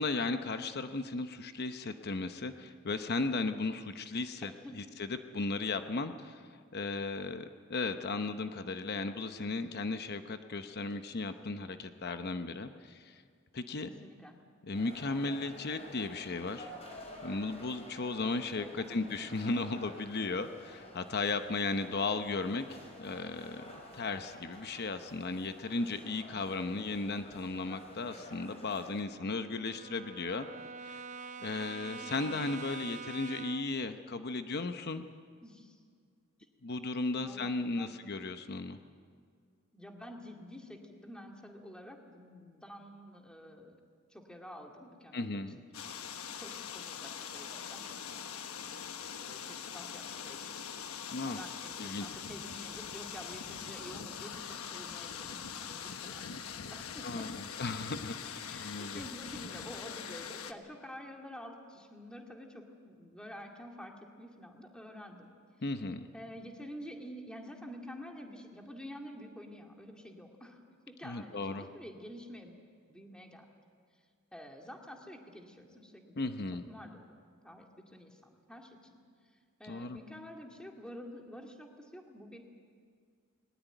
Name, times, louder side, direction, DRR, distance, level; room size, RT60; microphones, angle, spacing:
voice 1, 0.0-6.4 6.7-13.2 13.5-13.9 14.6-16.7 17.2-22.7 23.0-23.6 23.9-30.5 30.8-31.0 31.4-35.1 36.6-38.8 45.1-45.6 51.1-51.5 51.8-52.1 57.0-58.2 58.5-59.0 65.6-66.1 71.0-71.7 76.2-76.7 79.7-80.0, left 3 dB, 50° left, 8 dB, 0.8 m, -35 dB
voice 2, 13.8-14.4 18.6-19.0 32.0-32.4 35.4-35.8 37.1-38.0 39.7-43.7 44.1-45.9 46.4-48.5 49.2-50.6 51.2-57.4 58.4-65.3 66.1-70.6 70.9-72.6 72.9-73.5 74.3-76.3 76.7-78.8 79.6-82.4, equal, 5° left, 1 dB, 2.3 m, -49 dB
sound 1, 14.7-29.0, left 1 dB, 30° left, 4.8 m, -51 dB
Brass instrument, 28.2-33.8, right 5 dB, 35° right, 0.6 m, -46 dB
sound 2, 45.7-60.5, left 7 dB, 85° left, 1.1 m, -43 dB
20.5 x 19.5 x 9.1 m, 2.1 s
head